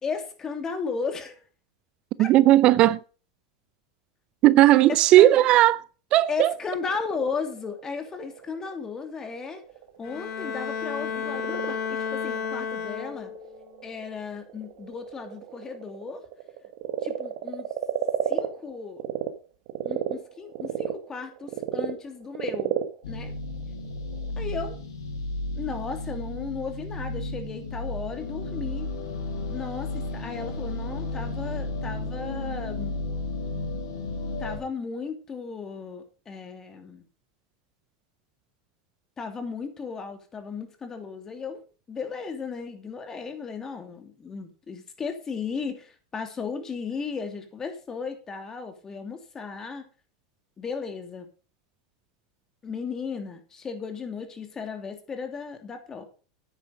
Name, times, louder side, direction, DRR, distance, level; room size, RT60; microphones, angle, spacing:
voice 1, 0.0-1.4 2.2-2.3 5.1-5.4 6.3-9.6 10.0-13.3 13.8-16.2 17.0-17.7 18.3-19.0 19.8-22.8 23.1-23.3 24.4-24.8 25.6-28.9 29.5-33.0 34.4-37.0 39.2-41.6 41.9-49.9 50.6-51.3 52.6-56.0, left 5 dB, 25° left, 2.9 m, -35 dB
voice 2, 2.2-3.0 4.4-5.8 6.1-6.5, right 15 dB, 45° right, 0.5 m, -16 dB
Frog, 6.6-19.3 19.7-24.3, right 12 dB, 65° right, 1.7 m, -34 dB
Bowed string instrument, 10.0-13.5, left 7 dB, 55° left, 3.0 m, -32 dB
sound 1, 23.0-34.6, left 2 dB, 90° left, 4.6 m, -33 dB
9.6 x 9.4 x 5.2 m
hypercardioid pair, 110°, 2 cm